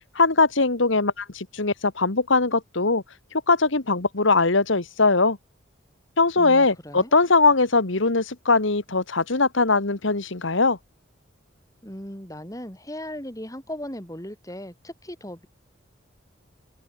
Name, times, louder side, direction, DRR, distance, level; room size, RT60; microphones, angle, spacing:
voice 1, 0.1-3.0 3.5-5.4 6.2-10.8, left 3 dB, 70° left, 1.7 m, -21 dB
voice 2, 6.4-7.1 11.8-15.5, left 1 dB, 15° left, 6.4 m, -37 dB
open air
head